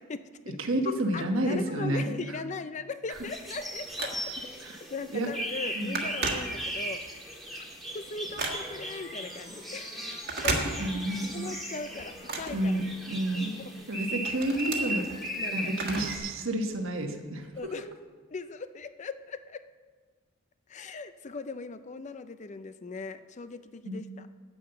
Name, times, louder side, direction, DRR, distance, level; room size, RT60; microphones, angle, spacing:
voice 1, 0.0-0.6 0.9-4.1 4.5-7.7 7.9-10.0 11.3-12.8 13.6-13.7 14.8-14.9 15.4-15.7 17.6-17.9 18.3-19.6 20.7-24.3, left 4 dB, 35° left, 11 dB, 0.4 m, -39 dB
voice 2, 0.6-2.2 4.6-4.8 5.1-5.3 5.7-6.0 10.4-10.5 10.8-11.4 12.5-13.6 13.9-15.0 15.5-17.5 23.8-24.0, right 1 dB, 75° right, 4 dB, 1.2 m, -30 dB
sound 1, 3.1-16.2, right 1 dB, ahead, 1.6 m, -37 dB
Telephone, 3.1-4.6 5.0-5.3 5.5-7.0 7.4-9.0 10.1-11.2 11.6-13.3 13.8-16.3 16.6-16.7 17.6-17.7, right 3 dB, 50° right, 1.5 m, -35 dB
Wind instrument woodwind instrument, 8.3-14.0, left 1 dB, 20° left, 2.7 m, -52 dB
9.1 x 8.6 x 6.8 m, 1.5 s
head